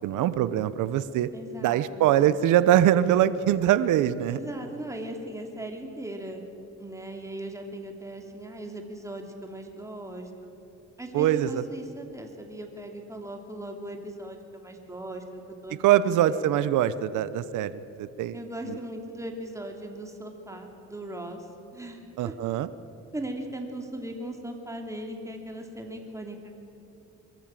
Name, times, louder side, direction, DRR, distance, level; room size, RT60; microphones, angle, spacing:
voice 1, 0.0-1.3 1.6-4.4 11.1-11.6 15.8-18.4 22.2-22.7, right 11 dB, 90° right, 15 dB, 0.8 m, -23 dB
voice 2, 1.3-2.4 4.3-6.4 6.8-10.5 11.0-16.4 18.3-22.3 23.1-26.7, right 1 dB, 10° right, 3 dB, 2.9 m, -39 dB
23.0 x 13.5 x 9.0 m, 2.8 s
cardioid pair, 90°, 30 cm